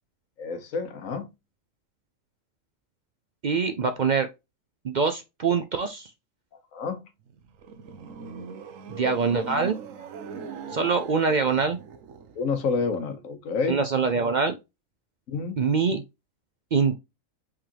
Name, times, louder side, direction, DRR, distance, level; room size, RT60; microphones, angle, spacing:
voice 1, 0.4-1.3 6.7-7.0 10.7-10.9 12.3-13.8 15.3-15.6, left 4 dB, 90° left, 1.4 m, -29 dB
voice 2, 3.4-4.3 4.8-6.1 8.9-9.8 10.7-11.8 13.7-14.6 15.6-16.0 16.7-17.0, right 5 dB, 55° right, 0.5 m, -24 dB
sound 1, 7.3-12.6, right 6 dB, 80° right, 1.1 m, -40 dB
5.0 x 3.6 x 2.9 m
omnidirectional pair, 1.3 m